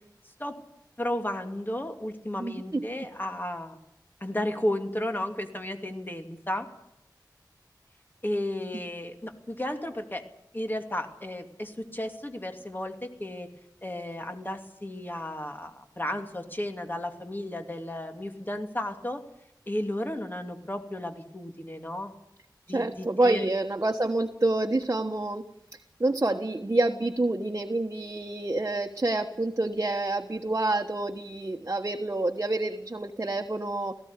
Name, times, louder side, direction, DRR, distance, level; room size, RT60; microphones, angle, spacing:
voice 1, 1.0-3.8 4.2-6.7 8.2-10.2 10.5-13.5 13.8-19.2 19.7-22.1 22.7-23.5, left 1 dB, 25° left, 6 dB, 2.6 m, -33 dB
voice 2, 2.4-2.8 22.7-25.4 26.0-34.0, right 2 dB, 40° right, 3 dB, 1.3 m, -27 dB
18.0 x 15.5 x 9.8 m, 0.82 s
wide cardioid pair, 60°, 7 cm